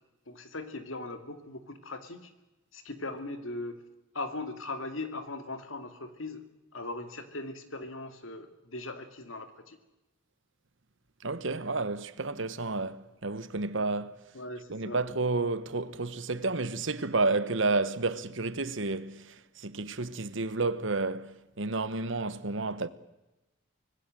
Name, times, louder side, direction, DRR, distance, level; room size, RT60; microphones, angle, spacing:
voice 1, 0.3-2.3 2.7-3.8 4.1-6.5 6.7-9.8 14.3-15.0, left 2 dB, 85° left, 2.6 m, -39 dB
voice 2, 11.2-14.1 14.7-19.3 19.6-22.9, right 3 dB, 70° right, 1.2 m, -31 dB
25.0 x 19.5 x 7.7 m
head